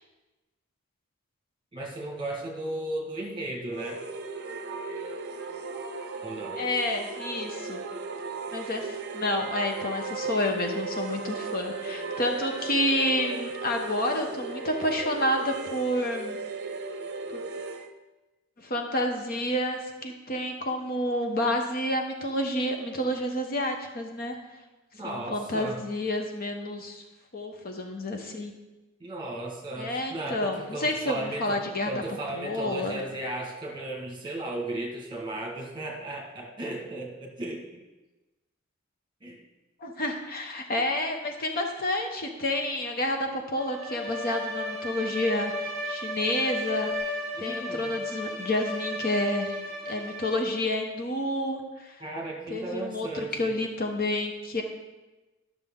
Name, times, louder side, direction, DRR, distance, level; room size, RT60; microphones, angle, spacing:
voice 1, 1.7-4.0 6.2-6.6 25.0-25.8 29.0-31.6 31.8-37.8 39.2-39.4 47.3-47.9 52.0-53.6, right 1 dB, 25° right, 0 dB, 1.5 m, -35 dB
sound 1, 3.7-17.9, right 4 dB, 55° right, 0.7 m, -36 dB
voice 2, 6.6-7.8 8.5-16.4 17.3-17.4 18.6-24.3 25.0-27.0 27.3-28.5 29.8-31.9 32.3-33.0 39.8-45.5 45.8-49.6 49.8-52.0 52.5-54.6, left 1 dB, 45° left, 3 dB, 0.9 m, -29 dB
Bowed string instrument, 43.5-50.6, left 1 dB, ahead, 3.4 m, -34 dB
12.0 x 6.5 x 3.7 m, 1.1 s
head